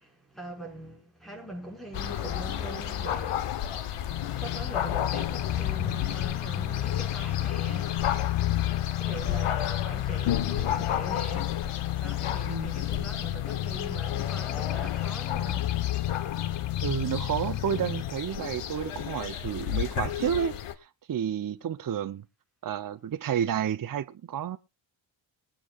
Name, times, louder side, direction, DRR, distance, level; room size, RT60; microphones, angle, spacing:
voice 1, 0.0-4.1 4.4-8.1 8.9-11.6 12.0-15.8, right 2 dB, ahead, 5.5 m, -42 dB
sound 1, 1.9-20.7, left 10 dB, 85° left, 1.2 m, -33 dB
sound 2, 4.1-18.1, left 14 dB, 60° left, 0.6 m, -31 dB
voice 2, 12.4-12.7 16.8-20.6 21.1-22.2 22.6-24.6, right 9 dB, 40° right, 0.7 m, -30 dB
21.5 x 9.1 x 2.4 m
wide cardioid pair, 110°, 50 cm